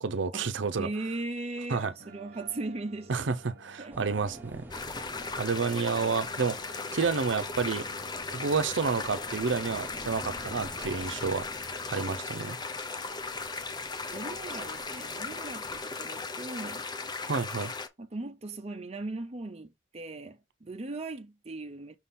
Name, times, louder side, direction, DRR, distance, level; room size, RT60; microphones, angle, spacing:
voice 1, 0.0-0.9 1.7-1.9 3.1-4.6 5.4-6.6 6.9-7.8 8.3-11.5 11.9-12.6 17.3-17.7, right 4 dB, 75° right, 0.6 m, -30 dB
voice 2, 0.8-3.1 3.8-4.1 14.1-16.8 18.0-22.0, right 2 dB, 35° right, 0.7 m, -38 dB
sound 1, 2.0-9.4, right 2 dB, 55° right, 1.1 m, -52 dB
sound 2, 3.9-15.8, right 1 dB, 10° right, 0.9 m, -49 dB
sound 3, 4.7-17.9, left 4 dB, 20° left, 0.7 m, -37 dB
6.3 x 3.7 x 4.2 m
head